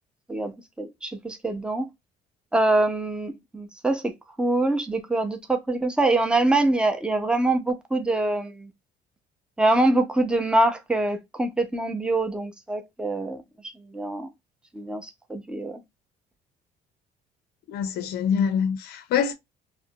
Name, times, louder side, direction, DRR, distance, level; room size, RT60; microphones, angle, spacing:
voice 1, 0.8-1.9 2.5-4.1 4.4-8.7 9.6-13.4 13.8-14.3 14.7-15.8, right 2 dB, 5° right, 0.5 m, -24 dB
voice 2, 17.7-19.3, left 7 dB, 70° left, 0.5 m, -25 dB
2.4 x 2.1 x 2.6 m
cardioid pair, 110°, 17 cm